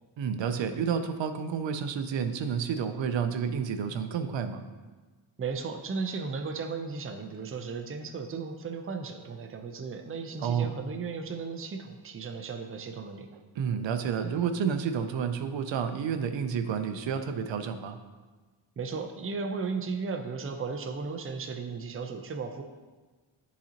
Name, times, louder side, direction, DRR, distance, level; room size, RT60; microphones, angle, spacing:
voice 1, 0.2-4.6 10.4-10.7 13.6-18.0, right 7 dB, 70° right, 9 dB, 0.6 m, -30 dB
voice 2, 5.4-13.3 18.8-22.6, right 4 dB, 30° right, 5 dB, 0.6 m, -35 dB
10.0 x 4.1 x 2.9 m, 1.3 s
cardioid pair, 85°, 47 cm